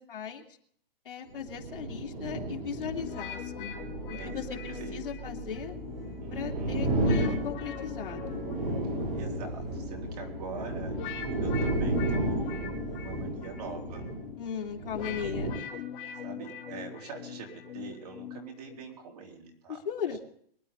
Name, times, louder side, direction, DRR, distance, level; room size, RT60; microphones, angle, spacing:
voice 1, 0.1-0.4 1.0-3.7 4.1-5.7 6.3-8.5 14.4-15.8 19.7-20.2, left 8 dB, 65° left, 1 dB, 2.6 m, -37 dB
sound 1, 1.3-15.5, right 1 dB, 55° right, 6.5 m, -33 dB
sound 2, 2.8-13.2, left 1 dB, 25° right, 6.9 m, -46 dB
sound 3, 3.0-18.9, left 8 dB, 20° left, 4.0 m, -42 dB
voice 2, 4.1-5.0 6.2-7.0 9.1-14.0 16.2-19.8, right 4 dB, 40° right, 0 dB, 3.8 m, -44 dB
24.0 x 11.5 x 3.6 m, 0.63 s
hypercardioid pair, 180°, 30 cm